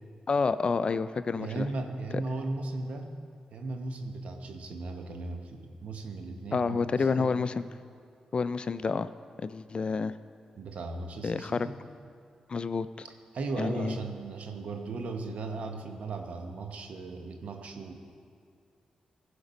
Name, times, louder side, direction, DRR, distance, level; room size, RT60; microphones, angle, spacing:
voice 1, 0.3-1.7 6.5-7.6 8.3-9.1 9.4-10.1 11.2-11.7 12.5-13.1 13.6-14.0, left 4 dB, 45° left, 14 dB, 0.4 m, -29 dB
voice 2, 1.4-3.1 3.5-7.4 10.6-11.8 13.0-17.9, right 3 dB, 70° right, 5 dB, 1.0 m, -37 dB
15.5 x 5.2 x 5.2 m, 2.2 s
cardioid pair, 55°, 2 cm